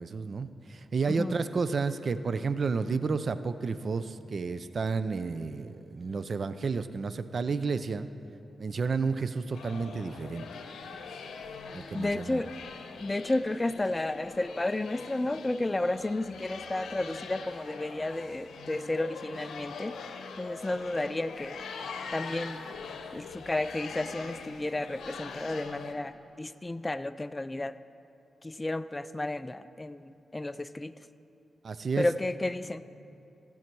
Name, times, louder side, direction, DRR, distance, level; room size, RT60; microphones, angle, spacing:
voice 1, 0.0-8.1 8.6-10.5 11.7-12.4 31.6-32.1, right 4 dB, 55° right, 12 dB, 0.5 m, -31 dB
sound 1, 9.5-25.9, left 5 dB, 85° left, 0.7 m, -43 dB
voice 2, 11.9-12.5 13.0-20.0 20.4-21.6 22.1-22.6 23.1-27.7 28.4-30.9 32.0-32.8, left 2 dB, 20° left, 14 dB, 0.3 m, -32 dB
16.0 x 7.2 x 4.6 m, 2.8 s
cardioid pair, 70°, 0 cm